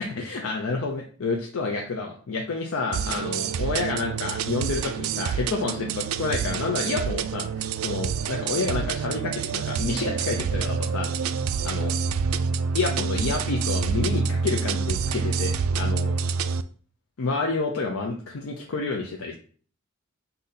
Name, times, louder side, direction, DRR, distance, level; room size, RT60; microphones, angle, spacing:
voice 1, 0.2-11.1 11.6-11.9 12.7-16.1 17.2-19.3, left 3 dB, 85° left, 0 dB, 0.6 m, -29 dB
sound 1, 2.9-16.6, right 5 dB, 85° right, 0.3 m, -27 dB
3.9 x 2.8 x 4.0 m, 0.43 s
head